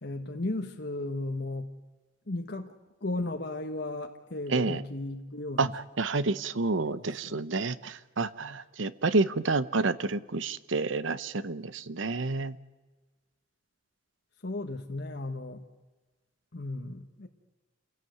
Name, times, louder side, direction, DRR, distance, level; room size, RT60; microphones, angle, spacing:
voice 1, 0.0-1.7 2.3-2.7 3.0-5.7 6.8-7.4 14.4-15.6 16.5-17.3, left 2 dB, 60° left, 4 dB, 1.2 m, -35 dB
voice 2, 4.5-4.8 5.6-12.6, right 3 dB, 75° right, 15 dB, 0.9 m, -29 dB
28.0 x 17.0 x 8.0 m, 1.3 s
head